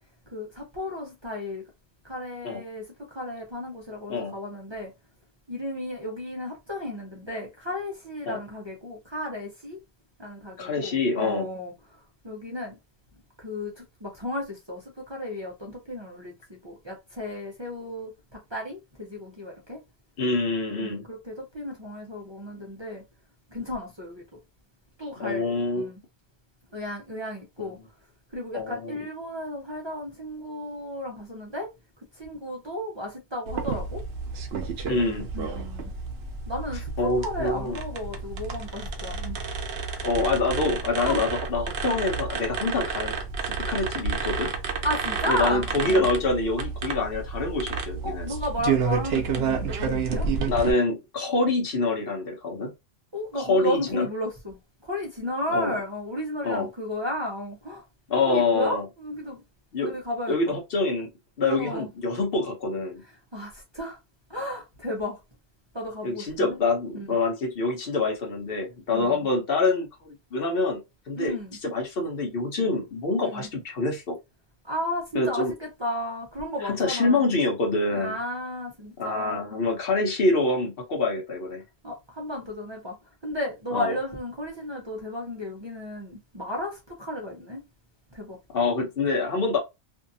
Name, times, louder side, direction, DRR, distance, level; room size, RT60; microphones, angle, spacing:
voice 1, 0.3-1.6 2.0-2.8 3.1-4.9 5.5-9.8 10.2-12.0 12.2-12.7 13.4-19.8 20.7-23.0 23.5-24.2 25.0-26.0 26.7-27.8 28.3-31.7 32.2-34.0 35.1-35.9 36.5-39.4 41.0-41.2 44.8-46.1 48.0-50.3 53.1-57.8 58.2-59.4 59.8-60.5 61.5-61.9 63.3-64.0 64.3-65.2 65.7-66.6 66.9-67.1 68.9-69.2 71.2-71.6 73.2-73.4 74.6-77.3 77.9-79.6 81.8-82.9 83.2-87.6 88.1-88.4, left 1 dB, 30° right, 0.6 m, -33 dB
voice 2, 10.6-11.5 20.2-21.0 25.2-25.9 28.5-28.9 34.9-35.3 37.0-37.8 40.0-43.2 43.4-44.5 45.3-48.3 50.5-52.7 53.4-54.1 55.5-55.7 56.4-56.7 58.1-58.8 59.7-59.9 60.3-61.1 61.4-63.0 66.0-70.8 71.1-71.4 71.6-74.2 75.1-75.5 76.6-78.2 79.0-81.6 83.7-83.9 88.5-89.6, left 3 dB, 60° left, 1.0 m, -26 dB
sound 1, 33.5-50.7, right 5 dB, 75° right, 0.9 m, -30 dB
2.6 x 2.3 x 2.6 m
omnidirectional pair, 1.1 m